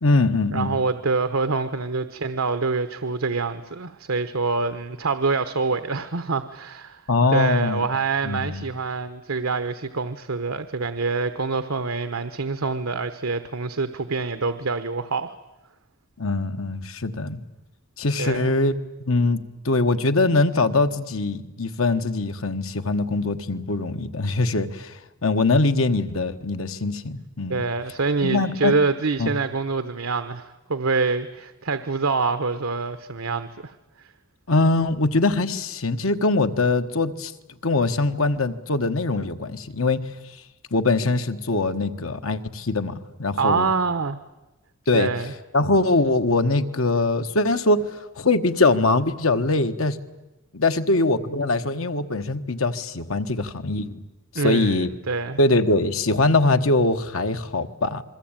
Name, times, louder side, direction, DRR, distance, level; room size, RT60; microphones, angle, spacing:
voice 1, 0.0-0.8 7.1-7.8 8.2-8.6 16.2-17.4 18.0-18.7 19.1-27.6 28.2-28.7 29.2-29.3 34.5-37.3 37.6-40.4 40.7-43.7 44.9-45.1 45.5-50.0 50.5-54.0 54.3-54.9 55.4-58.0, left 2 dB, 85° left, 9 dB, 1.4 m, -22 dB
voice 2, 0.5-7.0 7.3-15.3 18.2-18.5 27.5-33.7 34.0-34.1 43.4-44.2 44.9-45.3 54.3-55.4, right 4 dB, 90° right, 10 dB, 1.0 m, -25 dB
28.0 x 22.0 x 9.0 m, 1.0 s
head